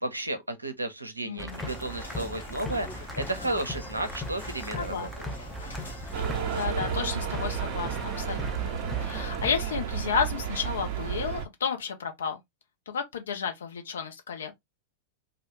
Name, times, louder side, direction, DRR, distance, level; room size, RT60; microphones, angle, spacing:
voice 1, 0.0-5.3, right 1 dB, 85° right, 0.5 m, -33 dB
voice 2, 1.2-1.6 4.8-5.1 6.2-12.4 12.9-14.5, left 6 dB, 65° left, 0.6 m, -32 dB
sound 1, 1.4-9.5, equal, 5° left, 0.5 m, -38 dB
sound 2, 1.5-6.7, left 1 dB, 80° left, 1.1 m, -46 dB
sound 3, 6.1-11.5, right 8 dB, 45° right, 0.6 m, -32 dB
2.2 x 2.0 x 3.0 m
figure-of-eight pair, 90°, 0 cm